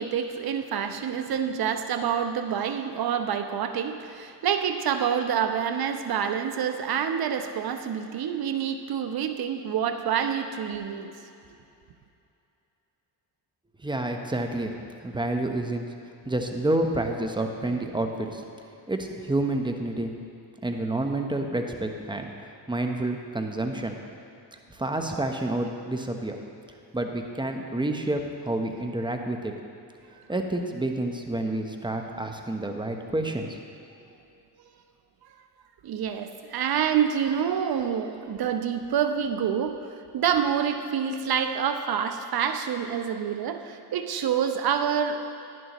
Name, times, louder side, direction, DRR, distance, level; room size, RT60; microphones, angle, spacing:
voice 1, 0.0-11.1 25.1-25.2 35.8-39.8 40.1-45.3, right 8 dB, 55° right, 7 dB, 0.8 m, -27 dB
voice 2, 13.8-14.7 15.0-15.8 16.3-18.4 18.9-20.1 20.6-22.3 22.7-24.0 24.7-26.4 26.9-29.5 30.3-33.6, right 1 dB, 10° right, 4 dB, 0.9 m, -29 dB
11.0 x 11.0 x 3.1 m, 2.7 s
supercardioid pair, 75°, 45 cm